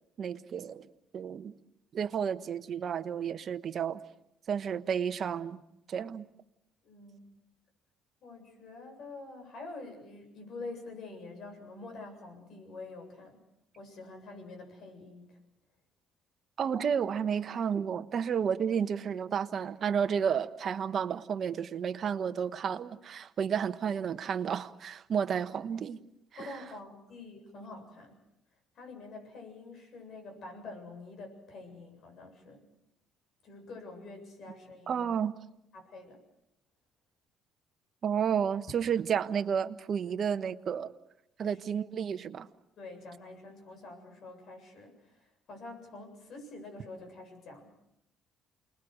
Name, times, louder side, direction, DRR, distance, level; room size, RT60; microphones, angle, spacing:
voice 1, 0.2-0.9 1.1-1.5 1.9-4.0 4.5-5.6 5.9-6.3 16.6-26.0 34.9-35.4 38.0-40.9 41.4-42.5, right 7 dB, 50° right, 9 dB, 1.1 m, -31 dB
voice 2, 6.8-7.3 8.2-13.4 13.8-15.4 26.4-28.2 28.7-32.7 33.4-35.1 35.7-36.2 41.4-41.6 42.8-47.7, left 3 dB, 60° left, 4 dB, 7.6 m, -46 dB
29.0 x 20.5 x 6.5 m, 0.81 s
cardioid pair, 90°, 0 cm